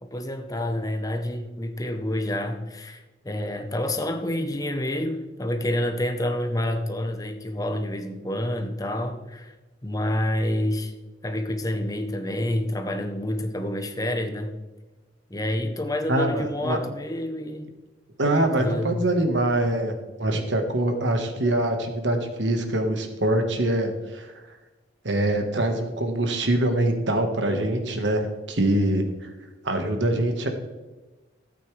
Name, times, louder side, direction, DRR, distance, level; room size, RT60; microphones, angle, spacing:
voice 1, 0.0-9.5 9.8-10.9 11.2-14.6 15.3-17.7 18.2-19.0, left 1 dB, 20° left, 6 dB, 0.9 m, -28 dB
voice 2, 16.1-16.8 18.2-19.9 20.2-24.3 25.0-29.0 29.6-30.5, right 1 dB, 85° right, 6 dB, 1.5 m, -24 dB
13.0 x 8.5 x 3.3 m, 1.1 s
head